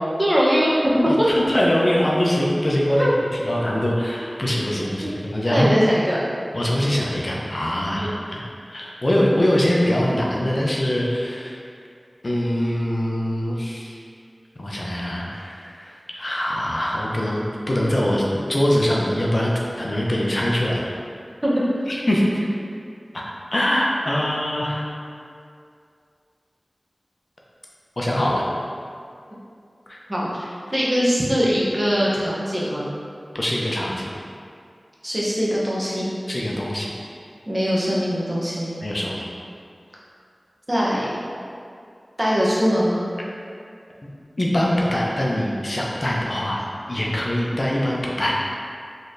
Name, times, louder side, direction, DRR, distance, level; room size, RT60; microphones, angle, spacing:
voice 1, 0.2-1.3 3.0-3.1 5.5-6.2 7.9-8.2 21.4-21.6 30.1-32.9 35.0-36.1 37.5-38.7 40.7-41.2 42.2-43.0, equal, 25° right, -6 dB, 0.8 m, -21 dB
voice 2, 1.1-3.1 3.4-5.7 6.5-8.4 8.7-11.6 12.2-13.9 14.6-20.8 21.9-22.3 23.1-23.2 23.5-24.8 28.0-28.4 29.9-30.0 33.3-34.1 36.3-36.9 38.8-39.3 44.4-46.6 46.9-48.4, equal, 50° left, -3 dB, 0.5 m, -23 dB
4.0 x 3.1 x 2.6 m, 2.4 s
wide cardioid pair, 50°, 0 cm